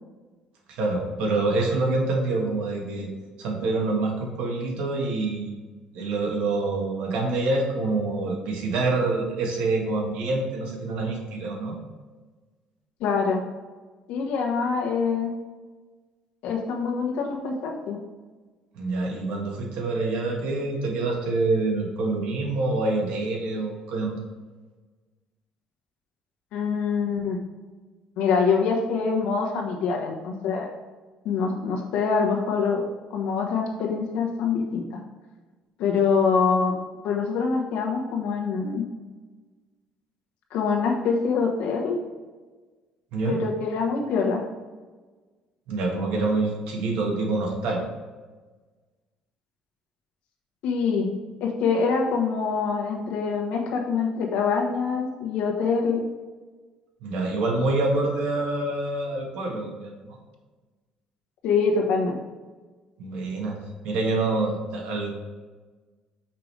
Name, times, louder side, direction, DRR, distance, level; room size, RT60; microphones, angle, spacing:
voice 1, 0.7-3.1 3.4-5.6 5.9-11.7 18.7-24.2 43.1-43.4 45.7-47.8 57.0-59.9 63.0-63.6 63.8-65.1, right 3 dB, 75° right, 0 dB, 1.4 m, -26 dB
voice 2, 13.0-13.4 14.1-15.3 16.4-18.0 26.5-27.4 28.2-30.7 31.2-32.8 33.1-35.0 35.8-36.8 37.0-38.8 40.5-42.0 43.2-44.4 50.6-51.1 51.4-56.0 61.4-62.2, left 5 dB, 70° left, 0 dB, 1.1 m, -25 dB
5.8 x 5.0 x 3.3 m, 1.3 s
cardioid pair, 175°, 2 cm